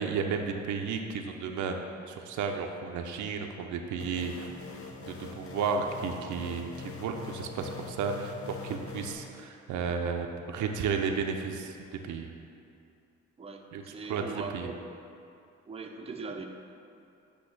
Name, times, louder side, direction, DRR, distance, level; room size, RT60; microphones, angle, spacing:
voice 1, 0.0-4.5 5.0-12.3 13.7-13.8 14.1-14.7, right 5 dB, 75° right, 4 dB, 0.6 m, -33 dB
sound 1, 4.0-9.1, left 5 dB, 45° left, 0.7 m, -43 dB
voice 2, 13.4-14.9 15.7-16.5, right 4 dB, 20° right, 3 dB, 0.6 m, -40 dB
8.6 x 2.9 x 5.8 m, 2.6 s
cardioid pair, 90°, 30 cm